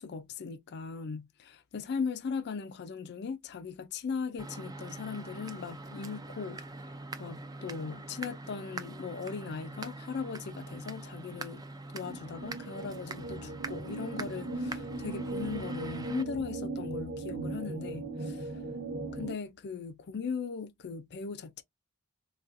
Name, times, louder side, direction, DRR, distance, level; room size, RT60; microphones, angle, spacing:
voice 1, 0.0-6.6 6.9-11.6 11.9-18.6 19.1-21.6, left 5 dB, 50° left, 0.4 m, -38 dB
sound 1, 4.4-16.2, right 2 dB, 15° right, 0.4 m, -43 dB
sound 2, 12.0-19.3, right 2 dB, 80° right, 0.8 m, -38 dB
4.0 x 2.3 x 2.5 m
head